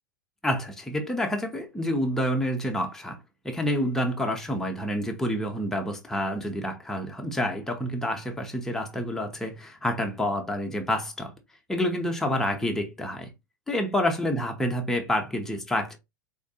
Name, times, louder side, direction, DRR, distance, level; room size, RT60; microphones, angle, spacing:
voice 1, 0.4-3.2 3.4-11.3 11.7-13.3 13.7-16.0, equal, 5° left, 0.8 m, -28 dB
3.7 x 2.5 x 2.4 m
figure-of-eight pair, 90°, 10 cm